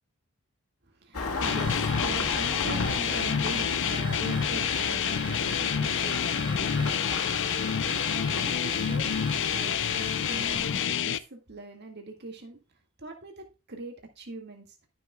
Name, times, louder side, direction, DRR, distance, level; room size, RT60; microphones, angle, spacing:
voice 1, 1.0-7.1 7.8-8.0 8.3-12.6 13.0-14.6, right 2 dB, 50° right, 1.9 m, -41 dB
Engine starting, 1.1-10.9, left 3 dB, 85° left, 1.6 m, -35 dB
sound 1, 1.4-11.2, left 8 dB, 60° left, 0.6 m, -28 dB
Car / Alarm, 1.4-10.7, right 5 dB, 20° right, 1.1 m, -42 dB
12.5 x 6.7 x 2.2 m
head